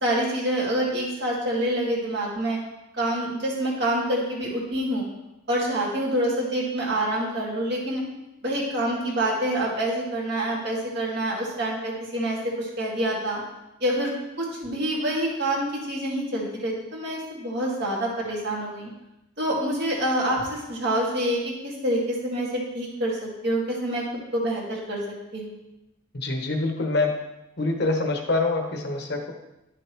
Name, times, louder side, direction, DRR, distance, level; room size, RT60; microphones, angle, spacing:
voice 1, 0.0-2.6 2.9-5.1 5.5-8.0 8.4-13.4 13.8-18.9 19.4-24.0 24.3-25.0 25.3-25.5, right 1 dB, 55° right, -3 dB, 2.2 m, -27 dB
voice 2, 26.1-27.1 27.6-29.2, left 2 dB, 55° left, 4 dB, 1.0 m, -25 dB
10.5 x 6.6 x 3.1 m, 0.94 s
head